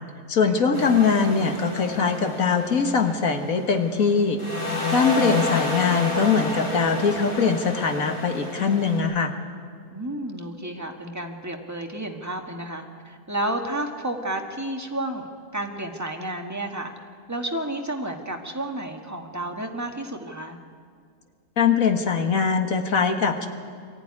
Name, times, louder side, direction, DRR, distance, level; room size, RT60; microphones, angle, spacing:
voice 1, 0.3-4.4 4.9-9.3 21.6-23.5, left 5 dB, 55° left, 6 dB, 1.7 m, -22 dB
sound 1, 0.7-4.1 4.4-9.0, left 2 dB, 80° left, 6.1 m, -30 dB
voice 2, 9.9-15.3 15.5-16.9 17.3-20.6, right 1 dB, 10° right, 2 dB, 1.6 m, -31 dB
23.0 x 14.5 x 9.7 m, 2.2 s
omnidirectional pair, 1.8 m